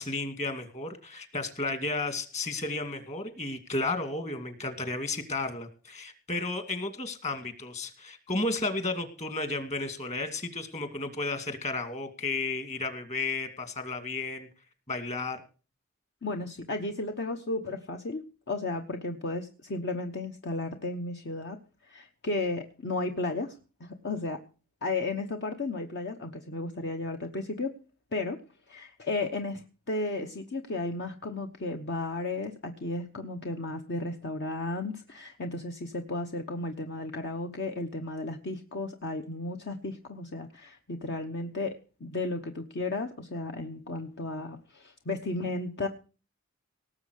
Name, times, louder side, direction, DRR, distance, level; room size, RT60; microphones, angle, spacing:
voice 1, 0.0-14.5 14.9-15.4, left 3 dB, 35° left, 8 dB, 2.3 m, -33 dB
voice 2, 16.2-21.6 21.8-24.4 24.8-27.8 28.1-28.4 28.7-41.7 42.0-45.9, left 2 dB, 55° left, 5 dB, 1.1 m, -34 dB
18.5 x 7.5 x 6.5 m, 0.37 s
head